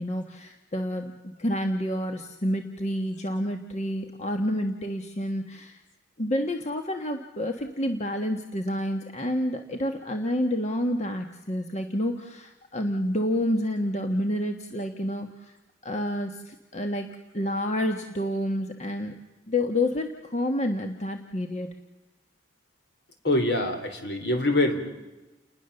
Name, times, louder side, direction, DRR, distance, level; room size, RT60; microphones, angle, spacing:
voice 1, 0.0-5.8 6.2-15.6 15.8-17.1 17.3-19.1 19.5-21.7, left 1 dB, 40° left, 5 dB, 1.4 m, -29 dB
voice 2, 23.2-24.8, left 1 dB, 65° left, 6 dB, 3.8 m, -24 dB
29.5 x 20.5 x 6.9 m, 1.1 s
head